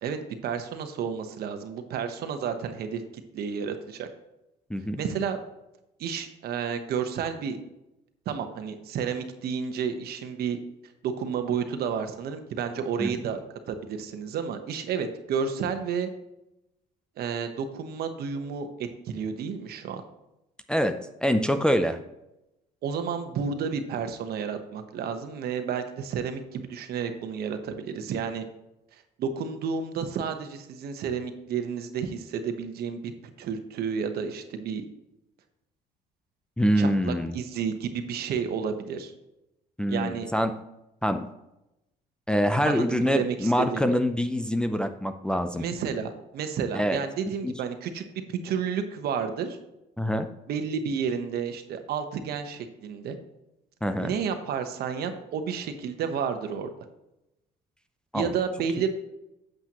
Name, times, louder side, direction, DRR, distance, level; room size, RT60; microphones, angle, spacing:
voice 1, 0.0-3.0 3.3-4.1 5.0-5.4 6.0-7.6 8.3-10.6 11.0-16.1 17.2-20.0 22.8-28.5 29.2-33.1 33.4-34.8 36.8-39.1 39.9-40.3 42.7-44.0 45.5-48.0 48.3-49.6 50.5-53.2 54.0-56.7 58.1-58.9, right 6 dB, 65° right, 7 dB, 1.1 m, -31 dB
voice 2, 21.2-22.0 36.6-37.3 39.8-40.5 41.0-41.2 42.3-45.6 46.7-47.0 47.4-47.5 50.0-50.3 53.8-54.1 58.1-58.3, equal, 5° left, 6 dB, 0.5 m, -25 dB
8.6 x 7.7 x 3.0 m, 0.89 s
cardioid pair, 110°, 17 cm